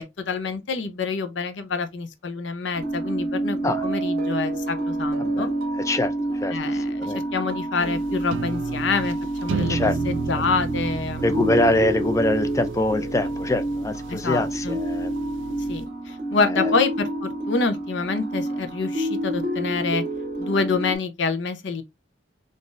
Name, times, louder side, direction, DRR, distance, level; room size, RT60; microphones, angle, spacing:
voice 1, 0.0-5.5 6.5-9.2 9.4-9.8 10.1-11.5 14.1-14.8 15.7-20.0 20.4-21.8, left 4 dB, 75° left, 0.6 m, -27 dB
sound 1, 2.7-21.0, right 1 dB, 50° right, 0.7 m, -28 dB
voice 2, 5.7-7.2 9.7-9.9 10.3-10.4 11.2-15.1 16.5-16.7, left 1 dB, 15° left, 0.3 m, -24 dB
sound 2, 7.8-15.9, right 5 dB, 80° right, 0.3 m, -34 dB
3.8 x 2.5 x 2.5 m
head